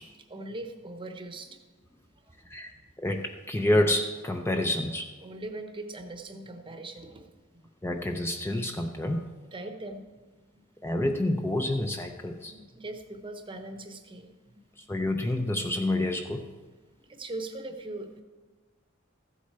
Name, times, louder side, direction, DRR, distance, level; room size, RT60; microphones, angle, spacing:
voice 1, 0.0-1.6 5.2-7.7 9.5-10.0 10.5-10.6 12.2-14.3 16.4-16.5 17.0-18.2, right 2 dB, 25° right, 6 dB, 0.9 m, -41 dB
voice 2, 3.0-5.1 7.8-9.3 10.8-12.5 14.9-16.4, left 1 dB, 10° left, 4 dB, 0.5 m, -28 dB
14.5 x 8.1 x 4.3 m, 1.3 s
head